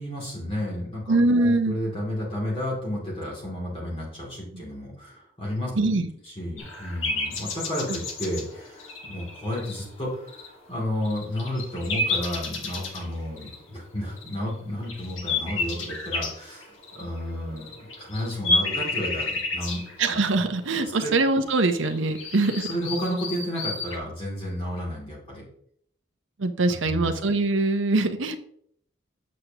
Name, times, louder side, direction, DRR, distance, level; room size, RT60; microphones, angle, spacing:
voice 1, 0.0-5.7 6.2-19.8 20.1-20.5 21.0-21.1 22.6-25.4 26.8-27.1, equal, 25° left, -4 dB, 2.7 m, -32 dB
voice 2, 1.1-1.8 4.5-4.6 5.8-6.1 20.0-22.7 26.4-28.4, right 2 dB, 75° right, 8 dB, 0.8 m, -23 dB
sound 1, 6.6-10.7 11.0-13.6 14.2-14.5 14.9-24.0, left 3 dB, 80° left, 1.6 m, -31 dB
8.1 x 7.5 x 2.9 m, 0.67 s
head